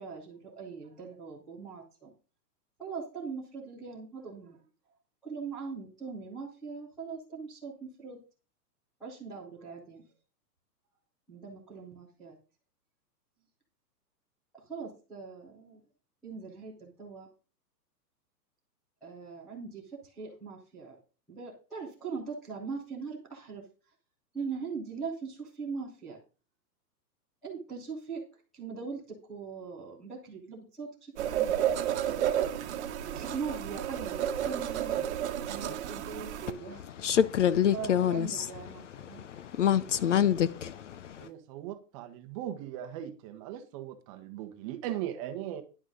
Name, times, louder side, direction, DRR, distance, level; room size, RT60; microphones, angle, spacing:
voice 1, 0.0-2.1 2.8-4.6 5.2-8.2 9.0-10.0 11.3-12.4 14.5-15.8 16.2-17.3 19.0-20.9 21.3-23.6 24.3-26.2 27.4-31.8 33.0-34.9 35.5-36.8 37.7-39.2, right 5 dB, ahead, 0.4 m, -41 dB
sound 1, 31.2-36.5, right 10 dB, 45° right, 1.2 m, -31 dB
voice 2, 37.0-38.5 39.0-41.3, left 9 dB, 50° left, 0.6 m, -26 dB
voice 3, 41.2-45.6, right 11 dB, 20° right, 1.0 m, -39 dB
11.0 x 6.3 x 5.2 m
hypercardioid pair, 160°, 49 cm